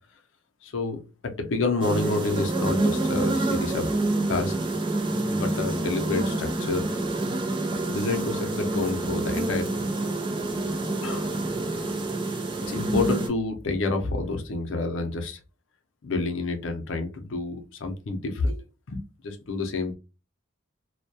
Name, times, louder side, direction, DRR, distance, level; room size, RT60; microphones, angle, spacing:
voice 1, 0.6-3.9 4.3-4.6 5.2-6.9 7.9-9.8 11.0-11.3 12.7-15.4 16.0-19.9, left 3 dB, 80° left, 0.6 m, -29 dB
sound 1, 1.8-13.3, right 2 dB, 25° right, 0.4 m, -27 dB
2.2 x 2.2 x 2.6 m
head